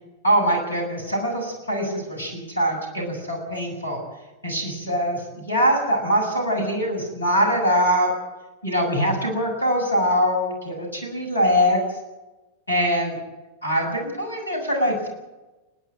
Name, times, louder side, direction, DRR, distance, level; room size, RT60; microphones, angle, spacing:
voice 1, 0.2-4.0 4.4-8.1 8.6-11.8 12.7-13.2 13.6-15.1, equal, 75° left, 2 dB, 7.3 m, -23 dB
30.0 x 10.0 x 9.2 m, 1.1 s
figure-of-eight pair, 90°, 0 cm